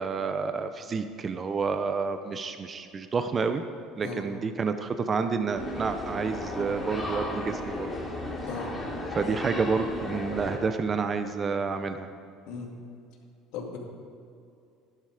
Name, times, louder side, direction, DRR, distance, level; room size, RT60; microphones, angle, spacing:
voice 1, 0.0-3.6 4.0-7.9 9.2-12.1, right 5 dB, 35° right, 8 dB, 0.7 m, -29 dB
voice 2, 4.0-4.3 8.5-8.7 12.5-12.7 13.5-13.8, left 5 dB, 75° left, 1 dB, 2.2 m, -36 dB
sound 1, 5.6-10.6, left 1 dB, 15° left, 3.3 m, -34 dB
12.0 x 11.0 x 5.0 m, 2.5 s
supercardioid pair, 90°, 0 cm